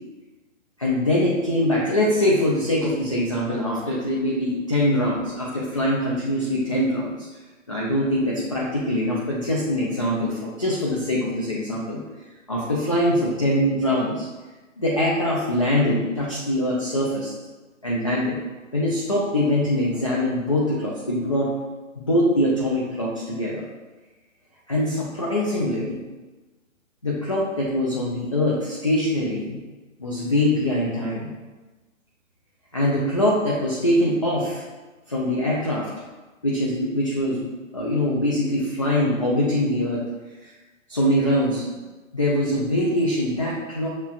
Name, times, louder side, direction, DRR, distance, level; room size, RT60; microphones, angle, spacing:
voice 1, 0.8-7.3 7.7-12.0 12.5-14.3 14.8-17.3 17.8-18.4 18.7-21.5 22.0-23.6 24.7-26.0 27.0-29.6 30.0-31.3 32.7-34.6 35.1-35.9 36.4-37.4 37.7-40.0 40.4-40.5 40.9-41.6 42.1-43.9, left 1 dB, 25° left, -6 dB, 0.4 m, -23 dB
7.1 x 2.4 x 2.4 m, 1.2 s
figure-of-eight pair, 135°, 39 cm